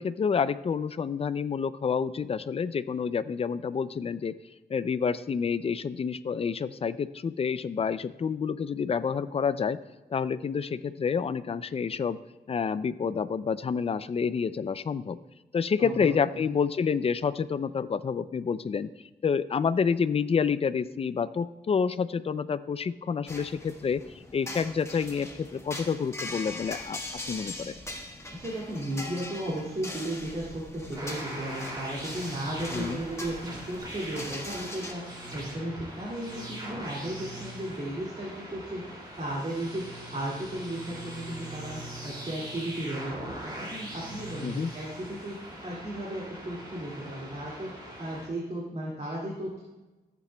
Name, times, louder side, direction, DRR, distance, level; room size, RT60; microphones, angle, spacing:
voice 1, 0.0-4.4 4.7-9.8 10.1-12.2 12.5-15.2 15.5-18.9 19.2-27.0 27.3-27.7 32.7-33.0 44.4-44.7, left 6 dB, 35° left, 14 dB, 0.4 m, -28 dB
voice 2, 15.8-16.4 28.3-45.4 45.6-49.6, right 1 dB, 40° right, -5 dB, 2.2 m, -35 dB
sound 1, 23.3-34.9, left 1 dB, 15° left, 1.3 m, -41 dB
sound 2, 31.0-48.3, right 1 dB, 25° right, 2.5 m, -41 dB
14.5 x 8.3 x 2.2 m, 1.1 s
wide cardioid pair, 110°, 17 cm